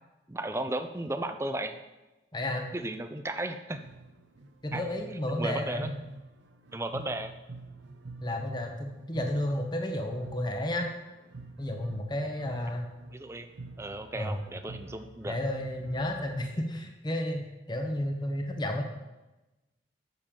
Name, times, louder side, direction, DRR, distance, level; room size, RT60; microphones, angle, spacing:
voice 1, 0.3-1.8 2.7-3.8 4.7-4.8 5.4-5.9 6.7-7.3 13.1-13.5 13.8-15.4, right 1 dB, 15° right, 8 dB, 0.4 m, -34 dB
voice 2, 2.3-2.7 4.6-6.0 8.2-10.9 11.6-12.9 14.1-14.4 15.3-17.4 17.7-18.8, left 1 dB, 25° left, 3 dB, 0.9 m, -32 dB
sound 1, 3.7-16.3, right 3 dB, 75° right, 0.7 m, -47 dB
9.2 x 7.0 x 3.7 m, 1.1 s
head